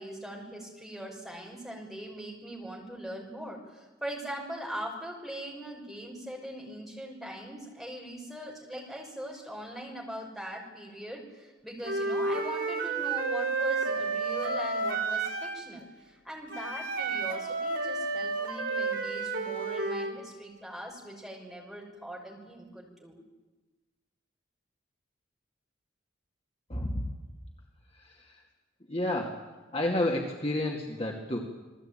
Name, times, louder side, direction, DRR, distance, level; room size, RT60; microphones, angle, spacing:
voice 1, 0.0-23.2, right 1 dB, ahead, -1 dB, 5.8 m, -41 dB
Wind instrument woodwind instrument, 11.8-15.6 16.5-20.1, right 3 dB, 75° right, 4.0 m, -31 dB
voice 2, 26.7-27.0 28.0-28.4 28.9-29.4 29.7-31.4, left 1 dB, 30° left, 0 dB, 2.3 m, -30 dB
27.5 x 20.0 x 9.1 m, 1.2 s
head